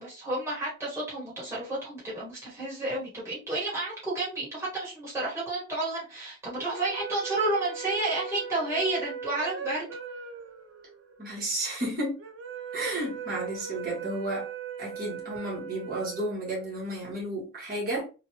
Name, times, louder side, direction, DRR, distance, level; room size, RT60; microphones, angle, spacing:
voice 1, 0.0-9.9, right 2 dB, 15° right, 1.6 m, -31 dB
sound 1, 6.6-17.0, right 6 dB, 75° right, 0.5 m, -40 dB
voice 2, 11.2-12.2 12.7-14.5 14.8-18.1, right 1 dB, 50° right, 1.7 m, -32 dB
3.8 x 2.4 x 3.0 m
head